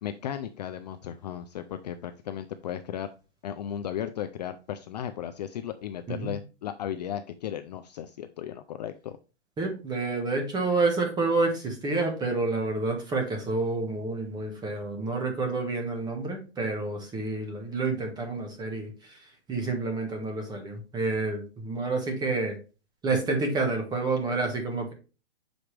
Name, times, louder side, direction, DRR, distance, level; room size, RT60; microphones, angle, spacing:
voice 1, 0.0-3.1 3.4-9.2, left 10 dB, 40° left, 9 dB, 0.4 m, -35 dB
voice 2, 9.6-22.6 23.0-24.9, right 3 dB, 10° right, 3 dB, 1.3 m, -29 dB
7.1 x 5.1 x 3.2 m, 0.33 s
hypercardioid pair, 150°, 33 cm